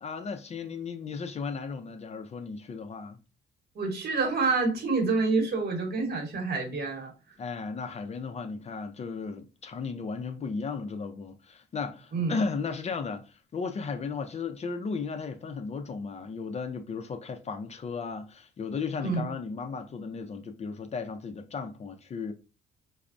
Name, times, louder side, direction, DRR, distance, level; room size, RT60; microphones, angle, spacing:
voice 1, 0.0-3.2 7.4-22.3, left 5 dB, 35° left, 0.4 m, -35 dB
voice 2, 3.8-7.1 12.1-12.3 19.0-19.2, right 4 dB, 55° right, 1.0 m, -27 dB
3.2 x 2.0 x 2.5 m
cardioid pair, 90°, 20 cm